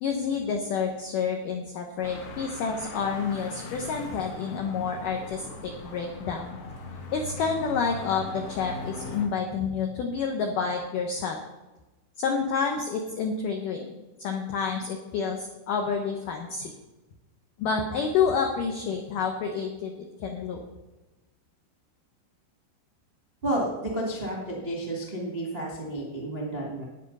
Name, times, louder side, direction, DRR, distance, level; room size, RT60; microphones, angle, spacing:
voice 1, 0.0-6.6 7.1-11.4 12.2-13.9 14.2-16.7 17.6-20.0 20.2-20.6, left 5 dB, 80° left, 3 dB, 1.9 m, -29 dB
sound 1, 2.0-9.3, left 2 dB, 65° left, 3.4 m, -40 dB
voice 2, 23.4-26.8, right 1 dB, 35° right, -3 dB, 0.9 m, -31 dB
12.5 x 9.3 x 5.5 m, 1.1 s
omnidirectional pair, 5.4 m